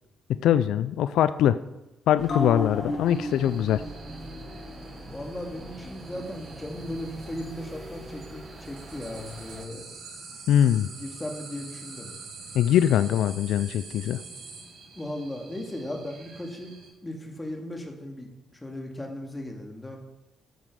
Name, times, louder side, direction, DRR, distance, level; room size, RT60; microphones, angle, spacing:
voice 1, 0.4-1.5 2.1-3.8 10.5-10.9 12.6-14.2, left 10 dB, 80° left, 13 dB, 0.3 m, -22 dB
sound 1, 2.2-9.2 9.5-9.6, left 1 dB, 50° left, 3.0 m, -37 dB
sound 2, 2.2-9.7, right 2 dB, 25° right, 1.1 m, -45 dB
sound 3, 3.1-16.9, right 4 dB, 85° right, 3.3 m, -46 dB
voice 2, 5.0-9.8 10.9-12.1 14.9-16.8 17.0-18.3 18.6-20.0, left 1 dB, 15° left, 1 dB, 2.1 m, -37 dB
9.2 x 7.4 x 4.8 m, 1.0 s
cardioid pair, 90°, 0 cm